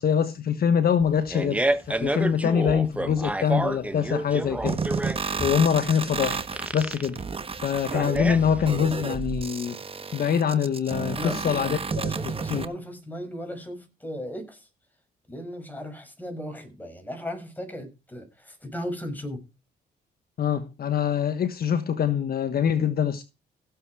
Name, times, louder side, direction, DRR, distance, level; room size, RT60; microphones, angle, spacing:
voice 1, 0.0-4.8 5.4-6.4 6.7-7.2 7.6-9.8 10.1-12.2 12.5-12.6 20.4-23.2, left 7 dB, 55° left, 1.4 m, -24 dB
Fart, 1.0-9.0, right 1 dB, 5° right, 1.2 m, -29 dB
sound 1, 4.7-12.7, right 5 dB, 30° right, 1.3 m, -32 dB
voice 2, 11.1-14.7 15.3-19.4, equal, 10° left, 6.2 m, -36 dB
16.0 x 7.9 x 5.0 m
cardioid pair, 85°, 18 cm